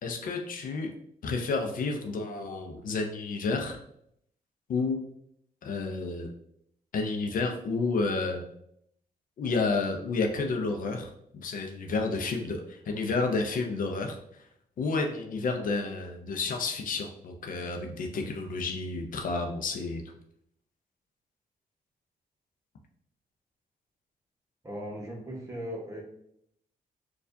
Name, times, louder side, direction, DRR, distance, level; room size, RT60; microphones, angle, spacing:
voice 1, 0.0-0.9 1.2-3.8 4.7-5.0 5.6-6.3 6.9-8.4 9.4-14.2 14.8-20.0, left 3 dB, 65° left, 3 dB, 0.5 m, -30 dB
voice 2, 24.6-26.0, equal, 20° right, -1 dB, 1.1 m, -38 dB
4.4 x 2.4 x 2.6 m, 0.73 s
cardioid pair, 105°, 15 cm